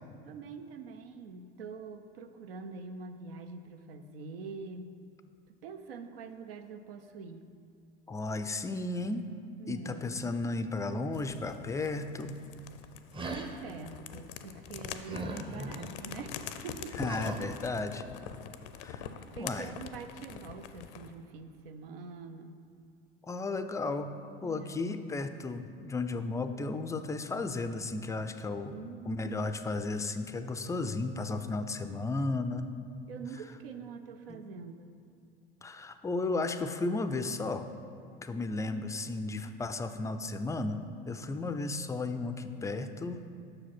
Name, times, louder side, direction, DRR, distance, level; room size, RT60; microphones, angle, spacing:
voice 1, 0.2-5.0 5.6-7.5 9.6-10.2 13.2-17.4 19.3-22.6 24.4-25.0 28.7-29.4 33.1-35.0 42.7-43.0, right 4 dB, 80° right, 8 dB, 0.6 m, -45 dB
voice 2, 8.1-9.3 9.7-12.4 15.4-15.7 17.0-18.0 18.8-19.1 19.4-19.7 23.2-24.2 24.4-28.8 29.1-32.7 34.3-34.5 35.6-37.7 38.2-43.2, left 3 dB, 10° left, 9 dB, 0.3 m, -34 dB
sound 1, 11.1-21.2, left 8 dB, 70° left, 0.5 m, -44 dB
sound 2, 13.1-13.6 15.1-15.9 17.0-17.5, right 2 dB, 20° right, 0.7 m, -39 dB
6.2 x 4.9 x 5.9 m, 2.4 s
hypercardioid pair, 75°, 29 cm